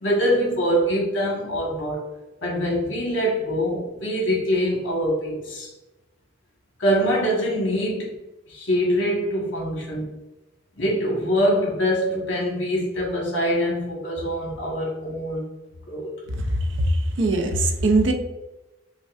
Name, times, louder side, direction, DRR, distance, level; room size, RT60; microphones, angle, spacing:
voice 1, 0.0-2.0 2.4-5.7 6.8-8.1 8.5-10.1 10.8-15.5 15.9-16.1, equal, 70° left, -3 dB, 1.2 m, -24 dB
voice 2, 16.3-18.1, right 2 dB, 65° right, 4 dB, 0.5 m, -21 dB
5.1 x 2.2 x 2.4 m, 1.0 s
head